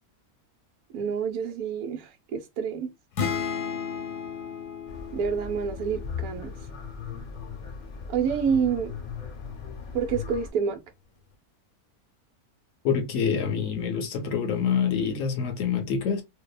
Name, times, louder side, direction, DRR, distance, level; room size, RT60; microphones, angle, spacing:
voice 1, 0.9-2.9 5.1-6.5 8.1-8.9 9.9-10.8, right 6 dB, 80° right, 1.1 m, -28 dB
sound 1, 3.2-6.9, left 7 dB, 85° left, 1.2 m, -34 dB
sound 2, 4.9-10.5, left 6 dB, 45° left, 0.6 m, -38 dB
voice 2, 12.8-16.2, left 7 dB, 70° left, 0.9 m, -26 dB
2.7 x 2.1 x 2.2 m
omnidirectional pair, 1.6 m